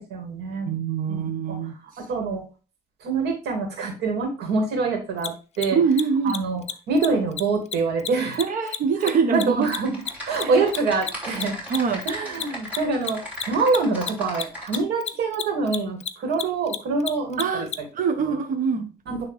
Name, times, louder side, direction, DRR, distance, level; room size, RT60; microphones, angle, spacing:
voice 1, 0.0-0.7 1.1-1.6 2.0-2.4 3.0-5.8 6.2-8.4 9.0-9.9 10.2-11.6 12.1-13.2 13.5-17.7 18.2-18.4 19.1-19.2, right 4 dB, 75° right, 3 dB, 2.4 m, -25 dB
voice 2, 0.7-1.8 5.7-6.4 8.4-9.7 10.4-10.7 11.7-12.0 17.4-18.9, right 5 dB, 55° right, 4 dB, 1.2 m, -24 dB
Mechanisms, 5.2-5.3 5.5-5.7 5.9-6.0 6.3-6.4 6.6-6.7 7.0-7.1 7.3-7.4 7.7-10.4 10.7-17.8, left 8 dB, 40° left, 0.6 m, -30 dB
Typing, 9.6-14.8, equal, 10° right, 3.1 m, -37 dB
9.4 x 3.4 x 3.3 m, 0.33 s
cardioid pair, 110°, 17 cm